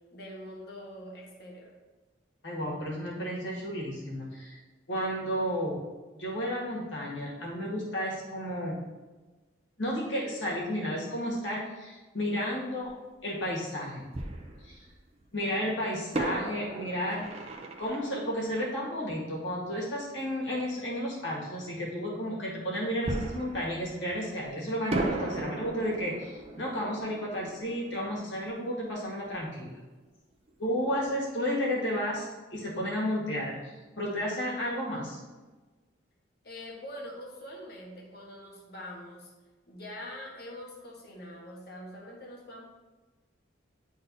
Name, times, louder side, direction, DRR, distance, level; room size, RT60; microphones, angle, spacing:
voice 1, 0.1-1.7 36.4-39.3 39.7-42.6, left 1 dB, 50° left, -2 dB, 1.2 m, -44 dB
voice 2, 2.4-4.6 4.9-5.8 6.1-8.8 9.8-12.9 13.2-14.1 14.6-14.8 15.3-17.3 17.8-29.7 30.6-35.2, equal, 70° left, -4 dB, 1.9 m, -32 dB
Fireworks, 12.8-12.9 14.1-15.2 16.1-19.6 23.0-24.5 24.9-29.4 29.7-29.8 30.3-30.5, right 2 dB, 30° right, 0.5 m, -37 dB
10.5 x 3.8 x 2.7 m, 1.2 s
head